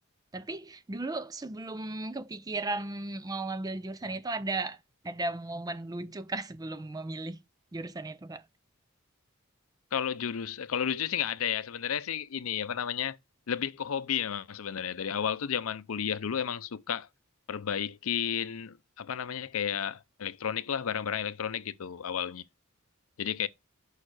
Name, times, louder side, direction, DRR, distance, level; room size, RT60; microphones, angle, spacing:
voice 1, 0.3-4.8 5.0-7.4 7.7-8.4, right 2 dB, 20° right, 0.4 m, -35 dB
voice 2, 9.9-13.2 13.5-17.1 17.5-22.4 23.2-23.5, left 8 dB, 85° left, 0.5 m, -32 dB
6.5 x 4.8 x 4.8 m
head